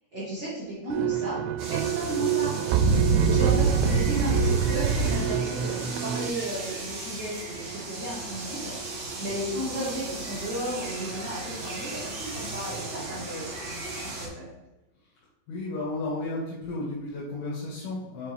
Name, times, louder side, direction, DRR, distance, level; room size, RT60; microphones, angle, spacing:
voice 1, 0.1-1.4 1.7-2.7 3.2-8.7 9.2-14.5, equal, 40° right, -10 dB, 1.8 m, -34 dB
sound 1, 0.9-6.3, right 6 dB, 85° right, 2.4 m, -24 dB
sound 2, 1.6-14.3, right 2 dB, 60° right, 1.6 m, -37 dB
voice 2, 15.5-18.3, left 2 dB, 90° left, -6 dB, 3.3 m, -33 dB
6.8 x 4.7 x 3.2 m, 1.0 s
omnidirectional pair, 4.4 m